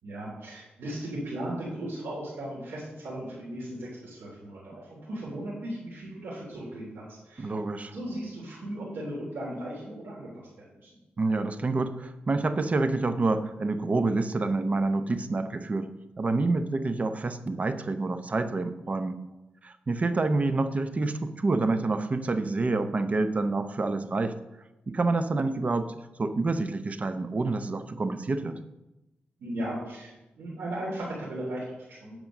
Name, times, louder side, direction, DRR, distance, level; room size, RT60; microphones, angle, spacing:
voice 1, 0.0-7.5 7.9-10.9 29.4-32.2, right 1 dB, 85° right, -9 dB, 3.5 m, -37 dB
voice 2, 7.4-7.9 11.2-15.9 16.2-19.2 19.6-24.4 24.9-25.9 26.2-28.6, right 3 dB, 40° right, 10 dB, 0.7 m, -27 dB
9.2 x 5.2 x 6.5 m, 0.99 s
cardioid pair, 90°, 4 cm